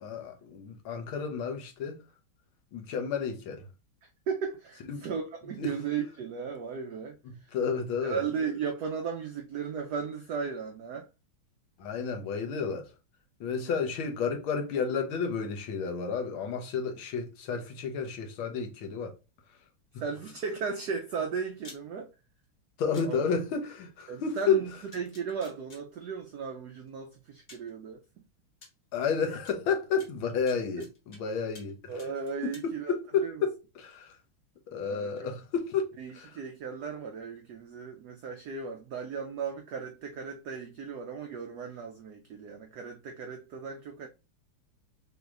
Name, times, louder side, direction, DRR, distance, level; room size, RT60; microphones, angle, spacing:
voice 1, 0.0-2.0 2.7-3.6 4.9-5.1 5.6-5.7 7.2-8.2 11.8-12.9 13.4-19.1 22.8-24.6 28.9-31.8 32.4-34.1 34.7-35.9 36.1-36.3, left 5 dB, 75° left, 1.7 m, -31 dB
voice 2, 4.3-7.2 8.0-11.1 13.5-13.7 20.0-22.1 23.0-23.2 24.1-28.0 31.9-33.4 34.8-35.3 36.0-44.1, right 6 dB, 75° right, 0.9 m, -36 dB
sound 1, 21.6-21.8 22.9-23.1 24.4-24.5 24.9-25.8 26.9-27.0 27.5-27.7 28.6-28.7 29.4-29.5 30.0-31.2 31.5-31.7 32.0-32.7, left 3 dB, 40° left, 0.8 m, -51 dB
6.2 x 2.8 x 2.4 m
omnidirectional pair, 2.4 m